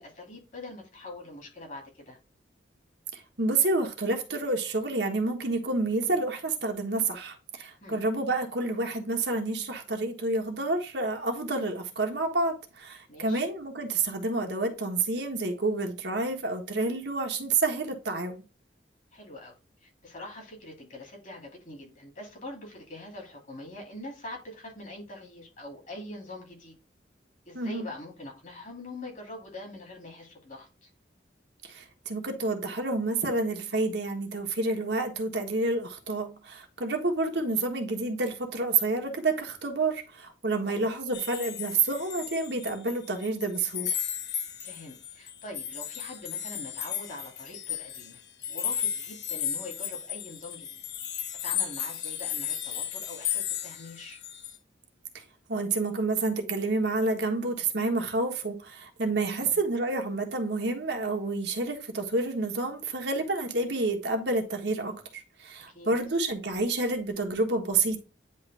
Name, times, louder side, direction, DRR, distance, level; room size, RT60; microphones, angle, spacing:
voice 1, 0.0-2.2 7.8-8.0 13.1-13.5 19.1-19.5 19.8-26.7 27.5-30.9 40.6-40.9 44.6-48.2 48.5-50.8 51.4-54.2 59.4-59.6 65.7-66.0, left 2 dB, 40° left, 2.7 m, -44 dB
voice 2, 3.1-18.4 27.5-27.9 31.6-43.9 55.1-55.2 55.5-68.0, right 3 dB, 65° right, 1.4 m, -29 dB
sound 1, 41.1-43.0 43.2-54.6, left 9 dB, 65° left, 1.1 m, -34 dB
9.7 x 3.2 x 3.4 m
head